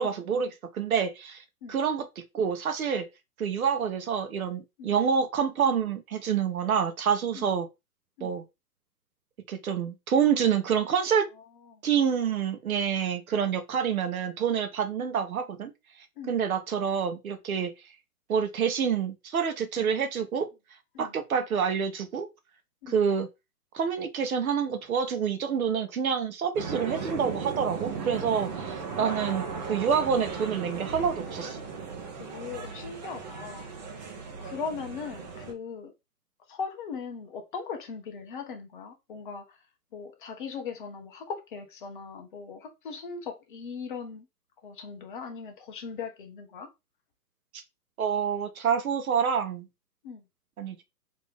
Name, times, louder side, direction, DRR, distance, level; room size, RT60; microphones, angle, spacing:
voice 1, 0.0-1.4 1.7-2.1 2.3-3.1 3.4-7.7 8.2-8.4 9.5-11.3 11.8-15.7 16.3-17.7 18.3-20.5 21.0-22.3 22.9-23.3 23.7-31.6 48.0-49.7 50.6-50.8, right 7 dB, 60° right, 1.0 m, -27 dB
voice 2, 11.3-11.8 16.2-16.4 19.8-20.0 20.9-21.1 22.8-23.0 28.5-28.6 28.9-29.2 32.2-33.7 34.4-35.9 36.5-39.6 39.9-44.3 44.6-46.7 50.0-50.2, left 5 dB, 30° left, 0.8 m, -39 dB
sound 1, 26.5-35.5, right 5 dB, 25° right, 0.9 m, -36 dB
4.2 x 2.9 x 3.4 m
hypercardioid pair, 140°, 49 cm